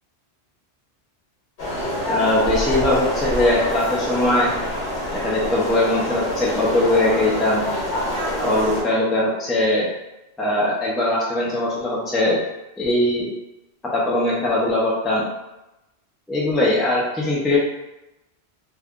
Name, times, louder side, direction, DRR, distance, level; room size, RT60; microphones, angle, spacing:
sound 1, 1.6-8.8, equal, 65° left, 1.1 m, -26 dB
voice 1, 2.1-4.5 5.2-7.7 8.4-9.9 10.4-12.4 12.8-13.3 13.9-15.2 16.3-17.6, left 1 dB, ahead, -5 dB, 0.3 m, -20 dB
2.5 x 2.3 x 3.5 m, 0.96 s
omnidirectional pair, 1.1 m